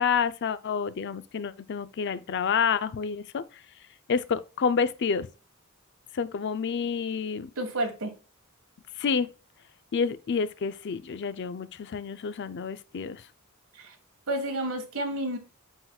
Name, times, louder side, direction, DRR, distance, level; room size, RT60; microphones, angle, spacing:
voice 1, 0.0-3.4 4.1-5.3 6.1-7.5 9.0-9.3 9.9-13.2, left 6 dB, 55° left, 0.4 m, -28 dB
voice 2, 7.6-8.1 13.7-14.0 14.3-15.4, right 1 dB, 75° right, 1.5 m, -30 dB
7.8 x 5.8 x 2.3 m
head